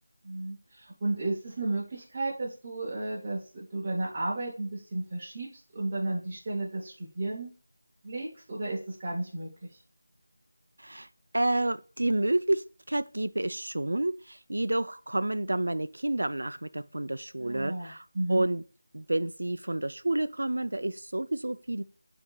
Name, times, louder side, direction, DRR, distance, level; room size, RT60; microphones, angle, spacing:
voice 1, 0.2-7.5 8.0-9.7 17.4-18.4, right 2 dB, 20° right, 0.8 m, -33 dB
voice 2, 11.3-18.6 18.9-21.8, right 1 dB, 85° right, 0.4 m, -29 dB
7.6 x 2.8 x 2.2 m
figure-of-eight pair, 175°, 0 cm